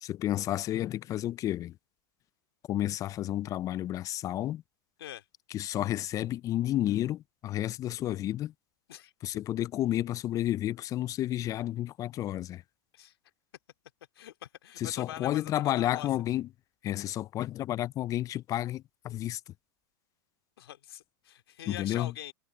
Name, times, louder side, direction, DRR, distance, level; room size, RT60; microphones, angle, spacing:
voice 1, 0.0-1.7 2.7-4.6 5.5-8.5 9.2-12.6 14.8-16.5 16.8-19.4 21.7-22.1, left 13 dB, 25° left, 0.4 m, -31 dB
voice 2, 14.2-16.1 20.6-22.3, left 12 dB, 80° left, 2.5 m, -43 dB
hypercardioid pair, 125°, 13 cm